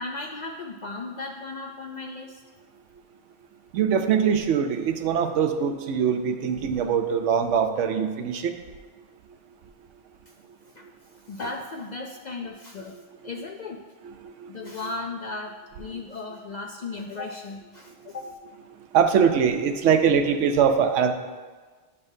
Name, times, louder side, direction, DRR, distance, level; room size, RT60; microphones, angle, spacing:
voice 1, 0.0-2.4 10.7-10.9 11.3-13.8 14.5-18.3, left 3 dB, 60° left, 2 dB, 0.5 m, -36 dB
voice 2, 3.7-8.5 12.9-13.0 14.0-14.7 15.9-16.0 18.9-21.1, right 7 dB, 85° right, 7 dB, 0.9 m, -23 dB
10.5 x 5.5 x 2.7 m, 1.4 s
omnidirectional pair, 1.2 m